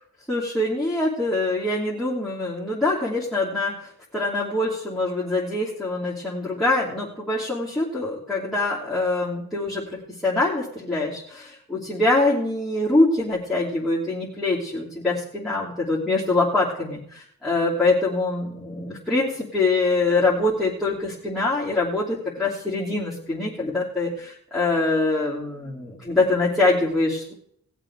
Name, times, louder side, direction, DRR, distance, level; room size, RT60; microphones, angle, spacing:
voice 1, 0.3-27.3, left 2 dB, ahead, -5 dB, 3.1 m, -24 dB
18.5 x 7.6 x 4.7 m, 0.69 s
wide cardioid pair, 80°, 31 cm